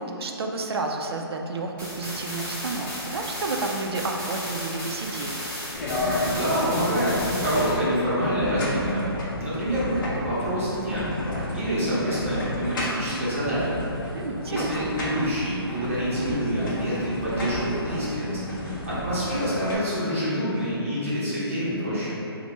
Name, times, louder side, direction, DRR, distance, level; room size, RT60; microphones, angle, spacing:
voice 1, 0.0-5.5 14.1-14.9, right 3 dB, 75° right, 2 dB, 0.4 m, -31 dB
sound 1, 1.8-7.8, equal, 5° left, 0.7 m, -34 dB
sound 2, 5.7-19.8, left 1 dB, 55° left, 0.6 m, -32 dB
voice 2, 6.2-9.1 9.4-9.9 10.2-11.1 11.5-13.7 14.5-22.2, equal, 30° right, -10 dB, 0.7 m, -27 dB
3.1 x 2.1 x 3.0 m, 2.9 s
hypercardioid pair, 175°, 13 cm